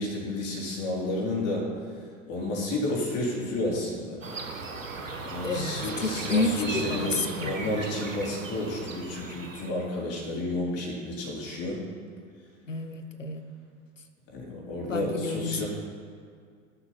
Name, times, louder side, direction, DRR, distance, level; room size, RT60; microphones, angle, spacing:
voice 1, 0.0-1.7 2.3-4.2 5.2-11.8 14.3-15.7, left 1 dB, 40° left, -3 dB, 3.9 m, -31 dB
sound 1, 4.2-9.7, right 4 dB, 85° right, 1.4 m, -37 dB
voice 2, 5.4-7.5 12.7-13.4 14.9-15.7, left 3 dB, 90° left, 8 dB, 1.0 m, -30 dB
13.5 x 8.3 x 5.9 m, 2.1 s
figure-of-eight pair, 80°, 37 cm